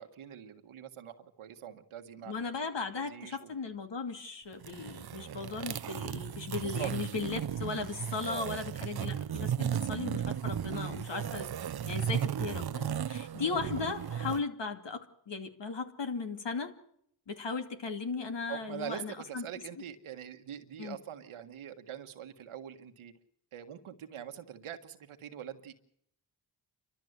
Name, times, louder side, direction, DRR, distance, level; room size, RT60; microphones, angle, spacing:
voice 1, 0.0-2.3 2.9-3.5 6.5-7.0 8.2-8.6 18.5-23.1 23.5-25.7, right 9 dB, 85° right, 7 dB, 1.6 m, -43 dB
voice 2, 2.2-11.5 11.9-15.0 15.3-16.7 17.3-19.5 20.8-21.0, left 4 dB, 60° left, 6 dB, 2.5 m, -37 dB
sound 1, 4.5-14.4, right 9 dB, 50° right, 0.8 m, -35 dB
29.0 x 13.0 x 8.0 m, 0.70 s
cardioid pair, 50°, 48 cm